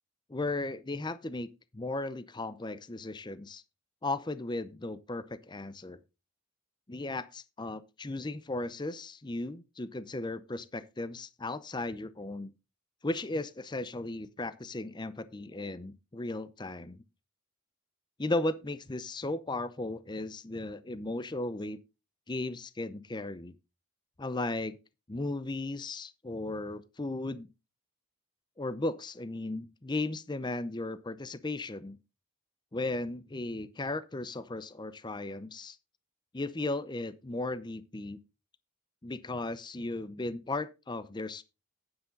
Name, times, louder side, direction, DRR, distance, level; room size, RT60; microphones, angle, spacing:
voice 1, 0.3-3.6 4.0-6.0 6.9-12.5 13.0-17.0 18.2-21.8 22.3-23.5 24.2-24.8 25.1-27.5 28.6-32.0 32.7-35.8 36.3-38.2 39.0-41.4, left 2 dB, 20° left, 0.6 m, -36 dB
9.7 x 9.6 x 3.8 m
head